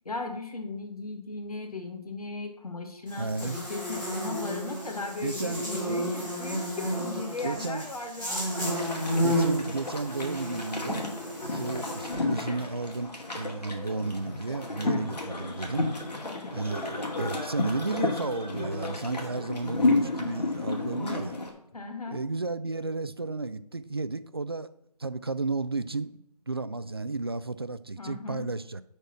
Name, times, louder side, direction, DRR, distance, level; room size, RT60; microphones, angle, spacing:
voice 1, 0.1-9.1 16.2-16.7 21.7-22.2 28.0-28.5, left 3 dB, 65° left, 4 dB, 1.8 m, -37 dB
Buzz, 3.1-12.1, equal, 5° left, 1.9 m, -32 dB
voice 2, 3.2-3.6 5.2-5.6 7.4-7.9 9.2-11.1 11.5-15.9 16.5-21.4 22.1-24.7 25.0-28.8, right 3 dB, 40° right, 13 dB, 0.4 m, -33 dB
sound 1, 8.6-21.5, left 2 dB, 80° left, 2.2 m, -32 dB
6.8 x 4.2 x 6.1 m, 0.78 s
figure-of-eight pair, 170°, 21 cm